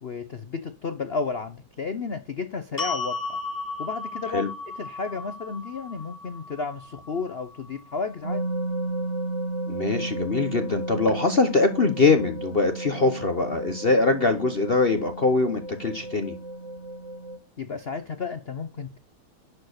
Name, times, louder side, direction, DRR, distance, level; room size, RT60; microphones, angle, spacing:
voice 1, 0.0-3.4 3.8-8.4 17.6-19.0, left 4 dB, 80° left, 10 dB, 0.5 m, -32 dB
sound 1, 2.8-9.0, left 3 dB, 10° left, 1.5 m, -36 dB
sound 2, 8.2-17.4, right 2 dB, 35° right, 2.0 m, -33 dB
voice 2, 9.7-16.3, left 3 dB, 45° left, 8 dB, 0.7 m, -23 dB
11.0 x 4.5 x 6.5 m, 0.32 s
omnidirectional pair, 2.3 m